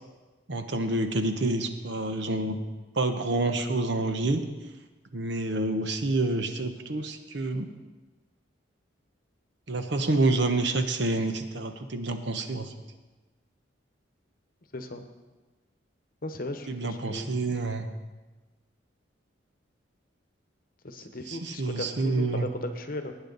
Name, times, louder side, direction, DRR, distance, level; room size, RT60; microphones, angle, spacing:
voice 1, 0.5-2.6 3.0-4.4 5.1-7.7 9.7-12.7 16.7-17.9 21.3-22.5, right 2 dB, 65° right, 7 dB, 1.0 m, -28 dB
voice 2, 14.7-15.1 16.2-17.3 20.8-23.1, left 1 dB, 45° left, 7 dB, 1.0 m, -36 dB
18.5 x 9.0 x 4.0 m, 1.2 s
head